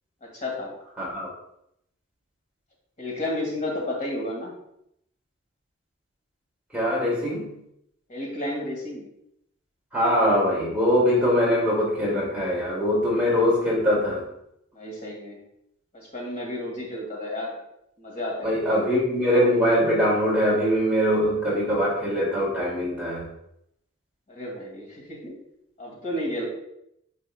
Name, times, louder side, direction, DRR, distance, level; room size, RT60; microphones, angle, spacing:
voice 1, 0.2-0.7 3.0-4.5 8.1-9.1 14.7-15.4 15.9-17.6 18.0-18.8 24.3-25.4 25.8-26.5, left 1 dB, 35° left, -2 dB, 2.1 m, -32 dB
voice 2, 1.0-1.3 6.7-7.5 9.9-14.2 18.4-23.3, equal, 5° right, -6 dB, 2.4 m, -22 dB
9.5 x 5.5 x 2.3 m, 0.77 s
head